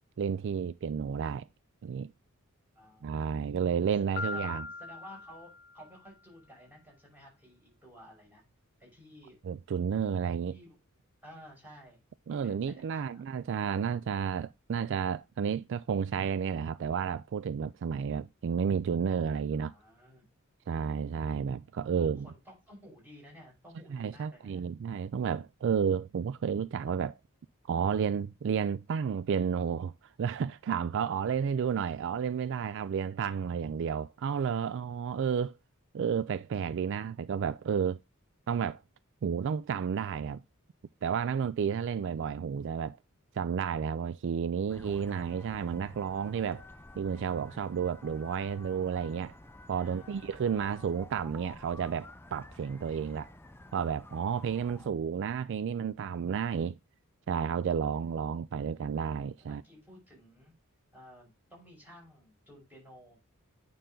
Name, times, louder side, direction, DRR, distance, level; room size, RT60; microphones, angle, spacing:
voice 1, 0.2-1.5 1.8-2.1 3.0-4.6 9.4-10.6 12.3-19.7 20.7-22.3 23.9-27.2 27.7-29.9 30.2-35.5 35.9-38.0 38.5-38.8 39.2-40.4 41.0-43.0 43.3-46.6 47.0-49.3 49.7-53.3 53.7-56.8 57.3-59.6, right 7 dB, 60° right, 0.3 m, -31 dB
voice 2, 2.8-3.6 4.0-8.5 8.8-9.4 10.5-10.8 11.2-12.0 12.3-13.4 19.5-20.3 22.0-24.7 49.7-50.3 54.3-55.3 58.6-58.8 59.4-60.5 60.9-63.2, equal, 10° right, 5.9 m, -54 dB
Piano, 4.2-6.1, left 4 dB, 45° left, 1.1 m, -40 dB
sound 1, 44.7-54.9, left 2 dB, 10° left, 0.6 m, -51 dB
9.1 x 5.7 x 3.8 m
head